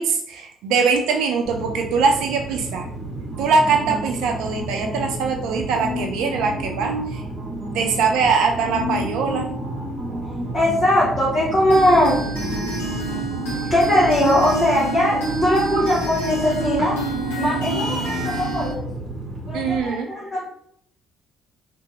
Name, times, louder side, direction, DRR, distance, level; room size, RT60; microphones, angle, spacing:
voice 1, 0.0-2.9 3.4-7.2 7.7-9.5 19.5-20.1, right 5 dB, 70° right, 3 dB, 0.4 m, -22 dB
sound 1, 1.4-19.8, right 1 dB, 30° right, 0.9 m, -30 dB
voice 2, 10.5-12.2 13.7-16.9 17.4-18.9 19.5-20.4, left 1 dB, 40° left, -7 dB, 1.0 m, -20 dB
sound 2, 11.7-18.7, right 2 dB, 80° left, 0.8 m, -29 dB
2.7 x 2.7 x 2.5 m, 0.67 s
hypercardioid pair, 50°, 0 cm